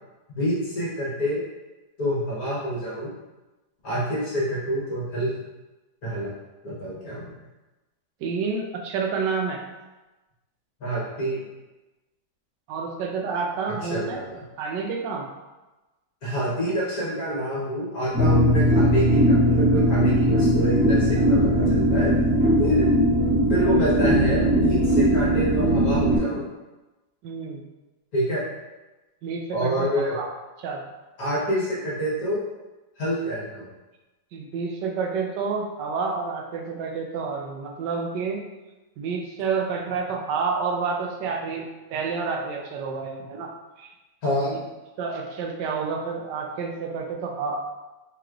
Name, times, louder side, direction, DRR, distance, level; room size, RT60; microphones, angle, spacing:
voice 1, 0.3-1.4 2.0-3.1 3.8-5.3 6.0-6.3 6.6-7.3 10.8-11.4 13.8-14.4 16.2-22.1 22.6-22.8 23.5-26.5 28.1-28.4 29.5-30.2 31.2-32.4 33.0-33.7 44.2-44.6, equal, 60° left, -7 dB, 1.7 m, -27 dB
voice 2, 8.2-9.6 12.7-14.2 14.6-15.3 27.2-27.6 29.2-29.9 30.1-30.3 30.6-30.8 34.3-38.5 39.0-43.5 43.8-43.9 44.3-44.6 45.0-47.6, right 5 dB, 90° right, 2 dB, 1.3 m, -29 dB
sound 1, 18.1-26.2, equal, 10° right, 0.5 m, -19 dB
4.8 x 3.1 x 2.4 m, 1.1 s
omnidirectional pair, 1.8 m